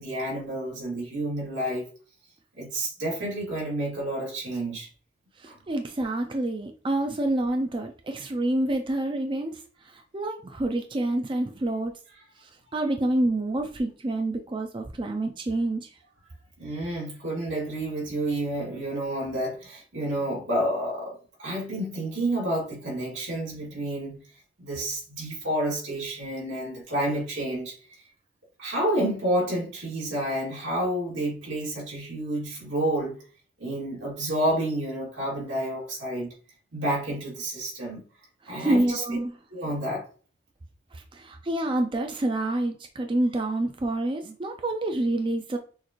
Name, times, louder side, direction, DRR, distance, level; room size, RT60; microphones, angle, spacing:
voice 1, 0.0-1.9 2.6-4.9 5.5-5.6 16.6-24.2 24.6-27.7 28.6-33.2 33.6-36.3 36.7-38.0 38.5-39.0 39.5-40.0, right 1 dB, 85° right, 2.5 m, -29 dB
voice 2, 5.4-9.6 10.1-11.9 12.7-15.9 38.6-39.3 40.9-45.6, right 1 dB, 25° right, 0.4 m, -27 dB
6.3 x 2.5 x 3.0 m
head